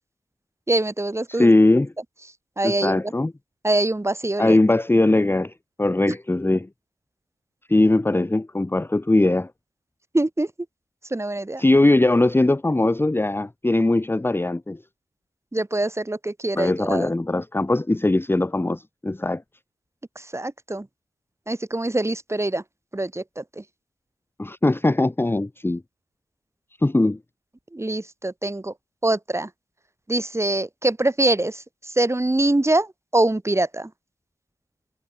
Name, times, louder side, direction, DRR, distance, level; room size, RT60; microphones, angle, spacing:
voice 1, 0.7-1.5 2.6-3.1 3.6-4.6 6.1-6.2 10.1-10.5 11.1-11.6 15.5-17.1 20.2-20.9 21.5-22.6 22.9-23.6 27.7-28.7 29.0-29.5 30.1-33.9, right 2 dB, 15° right, 4.1 m, -24 dB
voice 2, 1.3-1.9 2.6-3.3 4.4-5.5 5.8-6.7 7.7-9.5 11.6-14.8 16.6-19.4 24.4-25.8 26.8-27.2, left 2 dB, 15° left, 1.1 m, -20 dB
supercardioid pair, 50°, 16 cm